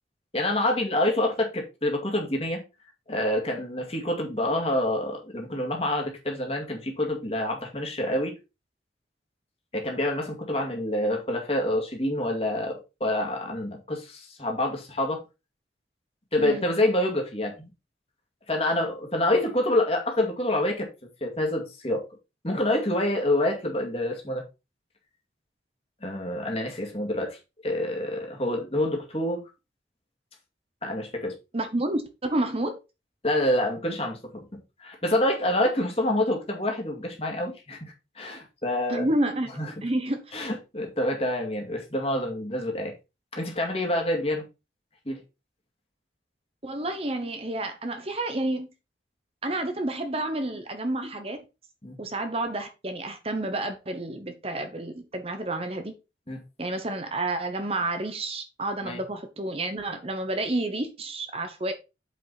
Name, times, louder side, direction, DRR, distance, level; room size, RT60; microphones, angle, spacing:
voice 1, 0.3-2.6 3.1-8.3 9.7-15.2 16.3-17.7 18.5-20.9 21.2-22.0 22.4-24.4 26.0-27.4 27.6-29.4 30.8-31.3 33.2-34.5 34.8-39.1 39.6-39.8 40.3-42.9 43.3-44.4 45.1-45.2 51.8-52.0 56.3-56.4 58.8-59.0, left 1 dB, 35° left, 2.2 m, -27 dB
voice 2, 31.5-32.8 38.9-39.5 39.8-40.2 46.6-48.7 49.4-51.4 52.0-55.9 56.6-61.7, right 2 dB, 30° right, 0.9 m, -30 dB
7.9 x 5.1 x 4.1 m
head